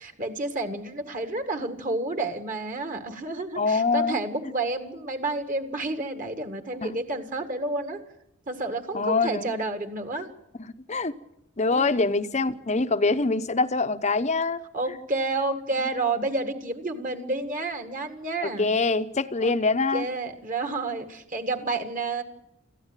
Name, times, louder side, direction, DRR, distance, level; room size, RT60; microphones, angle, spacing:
voice 1, 0.0-8.0 8.5-10.3 11.7-12.1 14.7-18.7 19.4-19.5 19.9-22.2, right 2 dB, 35° right, 1.9 m, -30 dB
voice 2, 3.6-4.2 6.8-6.9 8.9-9.5 10.9-11.1 11.6-14.6 18.4-20.0, left 3 dB, 30° left, 0.8 m, -24 dB
22.0 x 15.0 x 9.1 m
head